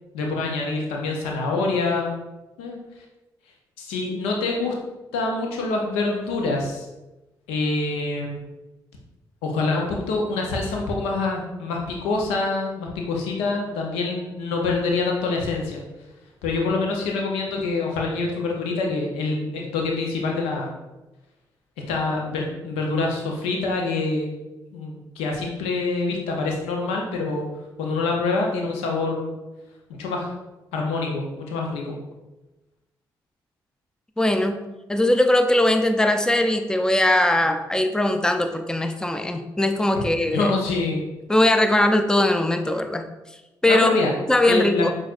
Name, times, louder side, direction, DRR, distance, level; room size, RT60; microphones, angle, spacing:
voice 1, 0.1-2.2 2.6-2.8 3.8-4.7 5.1-6.8 7.5-8.4 9.4-15.8 16.4-20.7 21.9-24.3 24.7-27.5 27.8-29.3 29.9-30.3 30.7-32.0 40.3-41.0 43.7-44.1 44.5-44.9, left 3 dB, 90° left, 0 dB, 0.6 m, -25 dB
voice 2, 34.2-34.6 34.9-40.5 41.3-43.0 43.6-43.9 44.3-44.9, left 1 dB, 5° left, 6 dB, 0.4 m, -20 dB
5.8 x 2.4 x 2.4 m, 1.0 s
hypercardioid pair, 45°, 10 cm